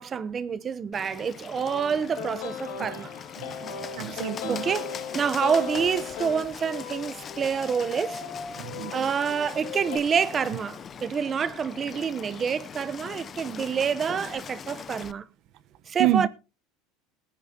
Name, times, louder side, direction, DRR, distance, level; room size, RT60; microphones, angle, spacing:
voice 1, 0.0-3.1 4.5-4.9 5.1-8.2 8.9-15.2 15.9-16.3, right 6 dB, 25° right, 0.8 m, -27 dB
Bird, 0.9-15.1, left 7 dB, 25° left, 0.6 m, -41 dB
sound 1, 1.5-10.0, left 6 dB, 80° left, 2.2 m, -37 dB
voice 2, 3.4-4.6 8.6-9.1 16.0-16.3, right 14 dB, 55° right, 0.9 m, -28 dB
21.5 x 9.5 x 2.8 m
supercardioid pair, 135°, 0 cm